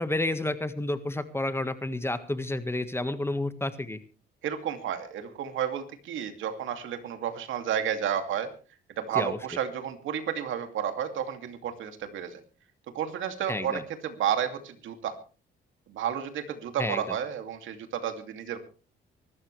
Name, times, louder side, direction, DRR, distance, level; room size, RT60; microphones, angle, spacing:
voice 1, 0.0-4.0 9.1-9.4 13.5-13.8 16.8-17.0, left 2 dB, 10° left, 10 dB, 1.6 m, -30 dB
voice 2, 4.4-8.5 9.0-12.4 12.9-15.2 15.9-18.6, right 9 dB, 80° right, 7 dB, 2.6 m, -31 dB
24.0 x 13.0 x 3.3 m, 0.35 s
cardioid pair, 90°, 20 cm